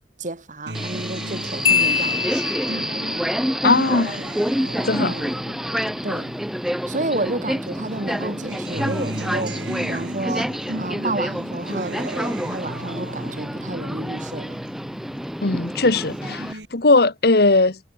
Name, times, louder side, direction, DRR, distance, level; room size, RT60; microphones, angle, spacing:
voice 1, 0.2-2.2 5.0-5.3 6.0-6.3 6.9-9.6 9.9-10.5 10.8-14.6, right 2 dB, 45° right, 2.5 m, -30 dB
Subway metro underground, 0.7-16.5, equal, ahead, 1.0 m, -28 dB
Acoustic guitar, 0.7-7.3 7.7-15.3 15.7-16.6, right 1 dB, 80° right, 4.6 m, -36 dB
Marimba xylophone, 1.7-3.1, left 7 dB, 30° left, 0.7 m, -22 dB
voice 2, 3.6-4.2 4.8-5.1 15.4-17.8, left 3 dB, 60° left, 1.4 m, -19 dB
head